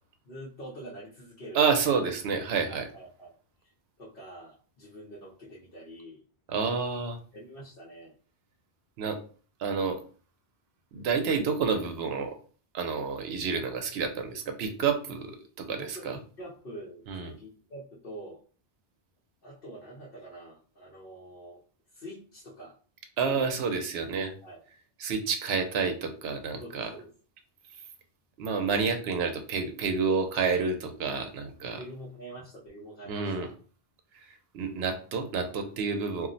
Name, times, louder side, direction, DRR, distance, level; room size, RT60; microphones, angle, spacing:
voice 1, 0.2-1.6 1.9-2.0 2.7-3.3 3.6-3.7 4.0-6.2 7.3-8.1 15.8-18.4 19.4-21.6 21.9-22.8 23.2-23.5 24.4-24.6 26.6-27.1 31.7-33.5, right 1 dB, 60° left, -5 dB, 0.9 m, -45 dB
voice 2, 1.5-2.9 6.5-7.2 9.0-9.2 9.6-10.0 10.9-12.4 12.7-16.2 17.1-17.3 23.2-24.3 25.0-26.9 28.4-31.8 33.1-33.5 34.5-36.3, right 5 dB, 70° right, 6 dB, 0.8 m, -29 dB
2.4 x 2.0 x 3.8 m, 0.41 s
omnidirectional pair, 1.1 m